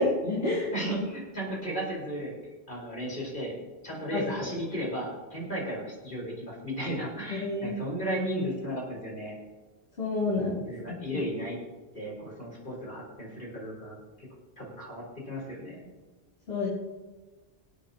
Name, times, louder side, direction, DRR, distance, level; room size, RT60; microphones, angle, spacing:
voice 1, 0.0-0.7 4.1-4.5 7.3-7.7 10.0-10.5 10.9-11.0 16.5-16.7, left 2 dB, 70° left, -8 dB, 3.2 m, -28 dB
voice 2, 0.7-2.3 2.7-9.4 10.3-11.6 11.9-14.3 14.6-15.9, equal, 55° left, -4 dB, 4.8 m, -35 dB
25.0 x 8.5 x 2.9 m, 1.3 s
omnidirectional pair, 1.0 m